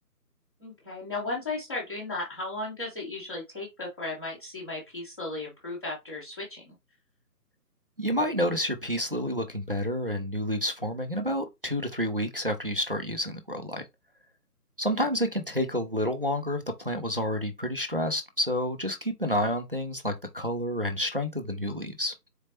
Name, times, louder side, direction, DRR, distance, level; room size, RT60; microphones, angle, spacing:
voice 1, 0.6-6.7, left 2 dB, 15° left, 0.7 m, -35 dB
voice 2, 8.0-13.8 14.8-22.1, equal, 40° right, 0.4 m, -29 dB
4.2 x 3.1 x 2.8 m
figure-of-eight pair, 160°, 48 cm